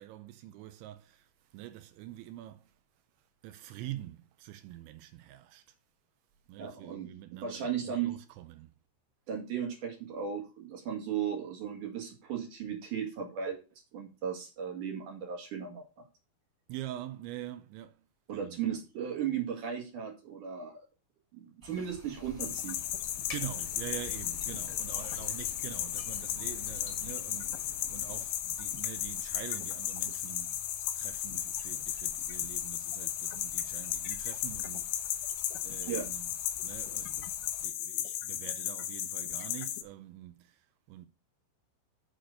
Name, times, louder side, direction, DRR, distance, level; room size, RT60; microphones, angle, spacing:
voice 1, 0.0-2.7 3.4-5.8 6.5-8.7 16.7-18.0 18.3-18.8 23.3-30.6 31.0-35.3 35.6-36.3 36.6-41.1, right 14 dB, 85° right, 2.6 m, -45 dB
voice 2, 6.6-8.2 9.3-13.6 13.9-16.0 18.3-20.8 21.3-22.8 35.9-36.1, right 8 dB, 55° right, 2.6 m, -36 dB
Stream, 21.6-37.6, left 2 dB, ahead, 1.7 m, -55 dB
sound 1, 22.2-28.2, left 6 dB, 60° left, 1.4 m, -47 dB
sound 2, 22.4-39.8, left 12 dB, 80° left, 2.6 m, -35 dB
6.6 x 6.0 x 6.5 m
omnidirectional pair, 5.9 m